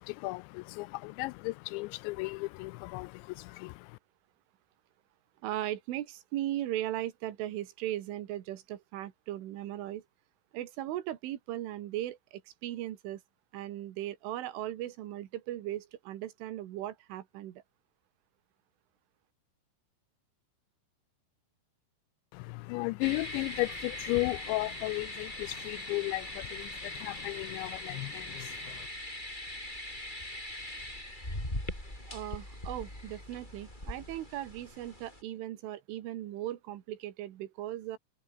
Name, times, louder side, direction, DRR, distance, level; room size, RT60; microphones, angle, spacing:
voice 1, 0.0-4.0 22.3-28.9, left 22 dB, 85° left, 2.6 m, -35 dB
voice 2, 5.4-10.0 10.5-13.2 13.5-17.6 32.1-38.0, right 13 dB, 80° right, 4.2 m, -38 dB
sound 1, 23.0-35.2, left 1 dB, 10° left, 7.9 m, -41 dB
omnidirectional pair, 5.6 m